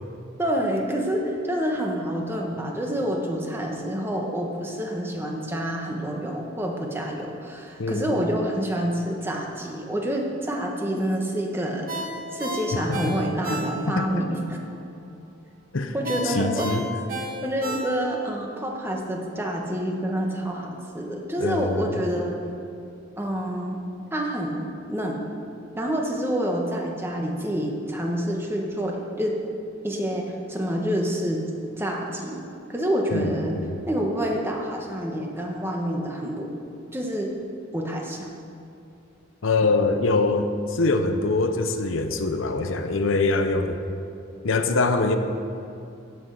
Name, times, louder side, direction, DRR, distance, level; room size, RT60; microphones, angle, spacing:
voice 1, 0.4-14.6 15.9-16.8 17.2-22.3 23.2-23.8 24.1-25.2 25.8-29.4 29.8-31.4 31.8-32.4 32.7-33.5 33.9-36.5 36.9-37.3 37.7-38.3 39.6-39.7, equal, 10° right, 0 dB, 1.3 m, -28 dB
voice 2, 7.8-8.2 12.9-13.1 13.5-13.6 14.0-14.2 15.7-15.9 16.2-16.8 21.4-21.9 33.1-33.7 39.4-43.8 44.4-45.2, left 3 dB, 70° left, 7 dB, 0.8 m, -24 dB
Ringtone, 11.9-14.1 14.5-14.6 16.0-18.3 18.7-18.8, right 1 dB, 45° right, 1.9 m, -32 dB
16.5 x 6.3 x 6.4 m, 2.6 s
head